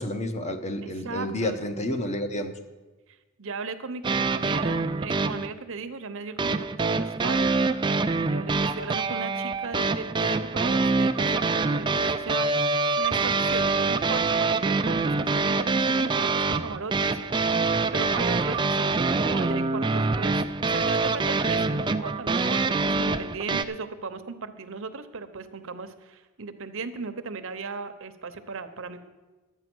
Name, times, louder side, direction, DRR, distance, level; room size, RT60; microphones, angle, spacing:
voice 1, 0.0-2.6, left 1 dB, 30° left, 8 dB, 0.9 m, -30 dB
voice 2, 0.8-1.6 3.4-7.5 8.3-12.5 13.0-17.2 17.9-29.1, right 4 dB, 65° right, 9 dB, 0.9 m, -37 dB
sound 1, 4.0-5.5 6.4-23.6, right 3 dB, 20° right, 0.4 m, -25 dB
12.0 x 8.8 x 6.1 m, 1.2 s
head